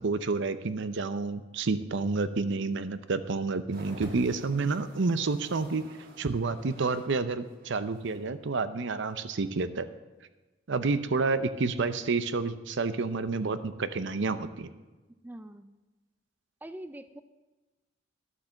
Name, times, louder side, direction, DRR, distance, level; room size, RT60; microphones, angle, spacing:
voice 1, 0.0-5.9 6.2-9.9 10.7-14.7, right 3 dB, 65° right, 12 dB, 0.7 m, -29 dB
sound 1, 3.7-7.2 7.4-8.3 9.0-9.2, equal, 50° right, 1.6 m, -48 dB
voice 2, 15.2-15.7 16.6-17.2, right 1 dB, 10° right, 11 dB, 0.4 m, -43 dB
12.0 x 7.4 x 6.4 m, 1.2 s
head